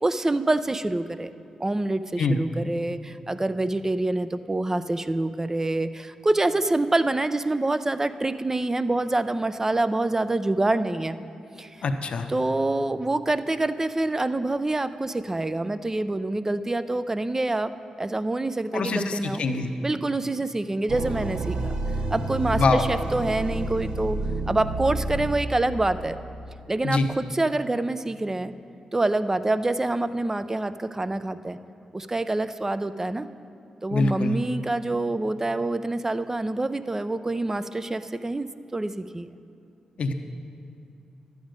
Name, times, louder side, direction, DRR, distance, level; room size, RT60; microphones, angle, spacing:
voice 1, 0.0-1.3 1.6-11.2 11.6-11.8 12.3-17.7 18.0-19.4 19.8-21.7 22.1-24.2 24.5-26.2 26.7-28.5 28.9-31.6 31.9-33.3 33.8-39.3, right 2 dB, 20° right, 12 dB, 0.5 m, -26 dB
voice 2, 11.8-12.3 18.7-19.7 22.5-22.8 26.8-27.1 33.9-34.4 40.0-40.1, left 3 dB, 65° left, 7 dB, 0.8 m, -24 dB
sound 1, 20.9-25.8, right 2 dB, 70° right, 1.0 m, -29 dB
11.5 x 9.3 x 5.1 m, 2.5 s
supercardioid pair, 55°, 2 cm